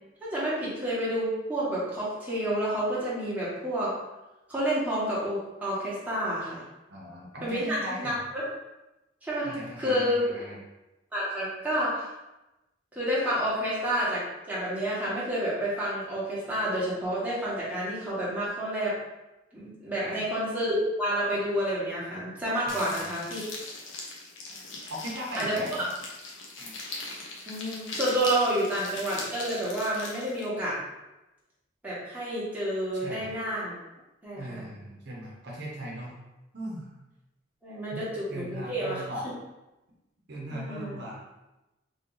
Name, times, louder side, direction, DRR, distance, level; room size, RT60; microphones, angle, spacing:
voice 1, 0.2-3.9 4.5-6.6 7.4-8.1 9.2-10.2 11.1-12.1 12.9-18.9 19.5-23.4 25.4-25.5 27.5-30.8 31.8-33.7 34.2-34.6 37.6-39.0 40.5-41.0, equal, 10° right, -9 dB, 1.2 m, -29 dB
voice 2, 6.9-8.2 9.4-10.6 20.0-20.3 22.7-23.2 24.4-24.6 24.9-25.8 26.6-26.8 32.9-33.3 34.4-36.1 36.5-36.9 37.9-38.0 38.3-39.3 40.3-41.2, equal, 60° right, -4 dB, 0.9 m, -39 dB
sound 1, 22.7-30.5, left 3 dB, 70° left, 0.8 m, -40 dB
3.5 x 2.6 x 3.9 m, 1.0 s
head